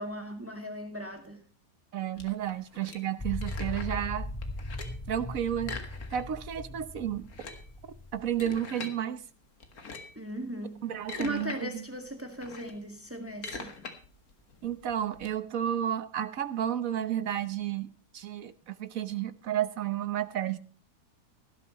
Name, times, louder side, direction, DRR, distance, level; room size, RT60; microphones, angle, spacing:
voice 1, 0.0-1.4 10.2-10.9 11.2-13.7, equal, 10° right, 5 dB, 1.9 m, -37 dB
voice 2, 1.9-4.3 5.1-5.7 6.1-7.3 8.1-9.2 10.8-11.8 14.6-20.6, right 10 dB, 60° right, 13 dB, 1.3 m, -32 dB
sound 1, 2.2-4.1 4.4-5.1 5.6-6.5 6.8-6.9 7.2-9.0 9.6-10.2 10.8-11.6 11.9-15.3, left 4 dB, 60° left, 2.2 m, -43 dB
sound 2, 3.2-8.5, left 1 dB, 25° left, 0.4 m, -38 dB
17.5 x 12.0 x 3.1 m, 0.39 s
omnidirectional pair, 1.8 m